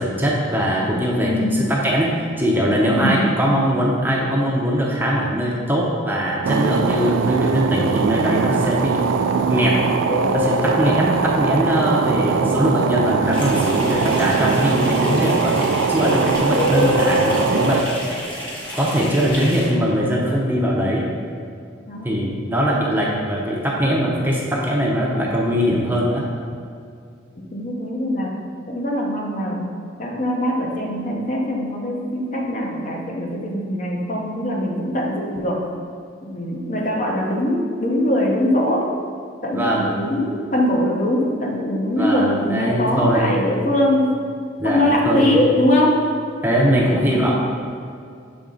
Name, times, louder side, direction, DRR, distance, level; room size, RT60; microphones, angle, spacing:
voice 1, 0.0-2.1 2.4-9.0 9.5-9.8 10.3-17.9 18.7-21.1 22.0-26.2 39.5-39.9 42.0-43.4 44.6-45.4 46.4-47.3, equal, 10° right, -3 dB, 0.6 m, -21 dB
voice 2, 1.2-1.6 2.9-3.8 10.2-10.4 11.0-11.2 21.9-22.2 27.4-29.7 30.0-35.7 36.2-38.9 39.4-44.1 44.6-46.0 47.1-47.3, left 1 dB, 40° left, -1 dB, 0.8 m, -22 dB
sound 1, 6.4-17.8, right 5 dB, 90° right, 0.3 m, -21 dB
sound 2, 10.0-12.5 16.5-18.2, left 2 dB, 90° left, 0.6 m, -26 dB
sound 3, 13.3-19.7, equal, 25° left, 1.3 m, -32 dB
7.0 x 4.0 x 3.8 m, 2.3 s
head